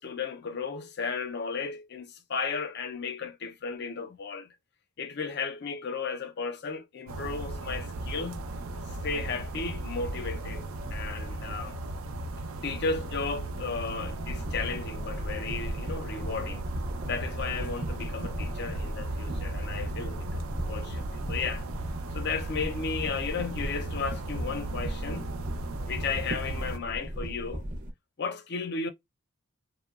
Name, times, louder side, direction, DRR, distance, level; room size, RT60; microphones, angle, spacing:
voice 1, 0.0-4.5 5.0-8.4 8.9-11.8 12.6-16.6 17.1-21.7 22.1-25.3 25.9-27.6 28.2-28.9, left 5 dB, 50° left, 0.5 m, -34 dB
sound 1, 7.1-26.8, right 2 dB, 75° right, 0.5 m, -36 dB
sound 2, 14.0-27.9, equal, 35° right, 0.6 m, -38 dB
2.9 x 2.0 x 2.3 m
head